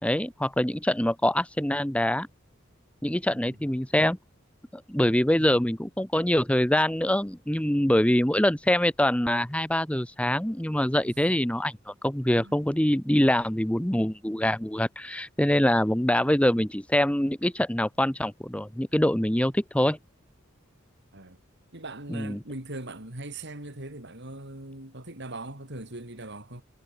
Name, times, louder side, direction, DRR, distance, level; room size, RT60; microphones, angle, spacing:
voice 1, 0.0-2.3 3.0-4.2 4.7-20.0 22.1-22.4, left 1 dB, 5° left, 1.1 m, -24 dB
voice 2, 11.0-11.4 12.3-12.6 21.1-21.4 21.7-26.6, right 2 dB, 60° right, 4.8 m, -40 dB
head